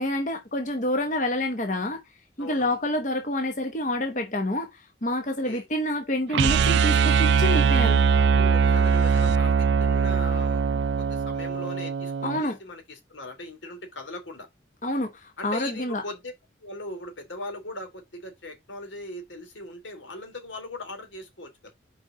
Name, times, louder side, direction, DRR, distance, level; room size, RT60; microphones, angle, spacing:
voice 1, 0.0-2.0 2.4-8.0 12.2-12.6 14.8-16.0, left 1 dB, 40° left, 1.0 m, -28 dB
voice 2, 2.4-2.8 5.4-5.7 8.3-10.7 11.0-12.1 12.4-14.5 15.4-16.3 16.6-21.7, left 2 dB, 85° left, 2.7 m, -39 dB
sound 1, 6.3-12.4, right 6 dB, 70° right, 0.3 m, -21 dB
5.0 x 4.6 x 5.0 m
head